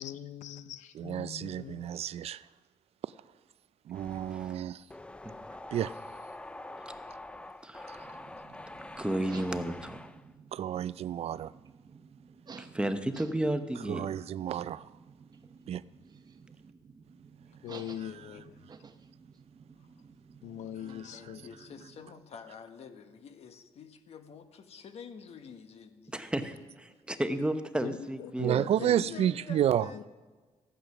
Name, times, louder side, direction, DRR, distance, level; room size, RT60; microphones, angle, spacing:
voice 1, 0.0-1.9 17.6-18.6 20.4-21.5 27.8-29.3 29.9-30.1, left 10 dB, 85° left, 0.6 m, -42 dB
voice 2, 1.0-2.4 3.9-4.8 5.7-5.9 10.5-11.5 13.9-14.8 15.7-15.8 28.4-29.9, right 11 dB, 60° right, 0.4 m, -30 dB
sound 1, 3.9-10.3, left 2 dB, 10° left, 0.5 m, -46 dB
voice 3, 5.2-5.6 7.6-8.1 9.0-10.1 12.6-14.1 26.1-28.7, right 1 dB, 10° right, 0.9 m, -33 dB
sound 2, 7.9-22.1, right 5 dB, 35° right, 0.8 m, -53 dB
voice 4, 20.8-26.2 28.5-30.1, left 6 dB, 60° left, 1.2 m, -48 dB
14.0 x 9.2 x 5.9 m
cardioid pair, 100°, 12 cm